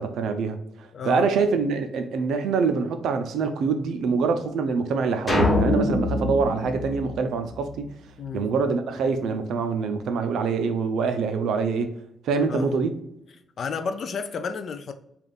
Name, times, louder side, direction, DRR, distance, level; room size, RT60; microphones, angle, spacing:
voice 1, 0.0-7.9 8.3-12.0 12.2-13.0, right 5 dB, 75° right, 0.5 m, -25 dB
voice 2, 0.9-1.3 8.2-8.5 12.5-12.8 13.6-14.9, left 5 dB, 45° left, 0.3 m, -31 dB
sound 1, 5.3-7.7, left 2 dB, 15° left, 1.0 m, -24 dB
3.4 x 2.4 x 3.9 m
cardioid pair, 165°, 0 cm